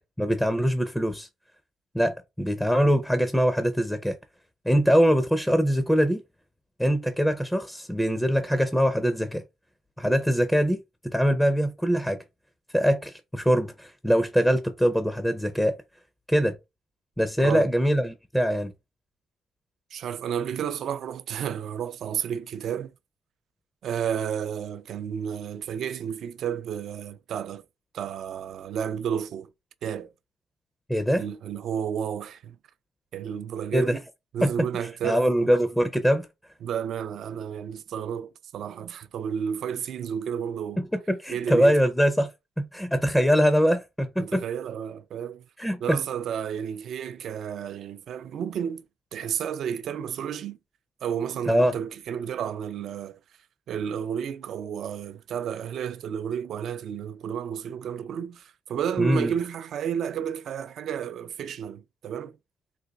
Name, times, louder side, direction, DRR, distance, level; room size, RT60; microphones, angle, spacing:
voice 1, 0.2-1.3 1.9-4.2 4.7-6.2 6.8-9.4 10.0-12.2 12.7-15.8 16.3-16.6 17.2-18.7 30.9-31.3 33.7-34.0 34.4-34.7 35.0-36.3 41.1-42.3 42.6-44.4 45.6-46.0 51.5-51.7 59.0-59.3, equal, 5° left, 0.5 m, -23 dB
voice 2, 17.4-17.7 19.9-22.9 23.8-27.6 27.9-29.5 29.8-30.1 31.2-32.6 33.1-34.0 34.3-35.5 36.6-40.8 41.3-41.8 44.2-45.4 45.8-48.9 49.1-50.6 51.0-53.2 53.7-62.3, right 8 dB, 70° right, 0.4 m, -31 dB
4.0 x 2.5 x 2.3 m
cardioid pair, 90°, 0 cm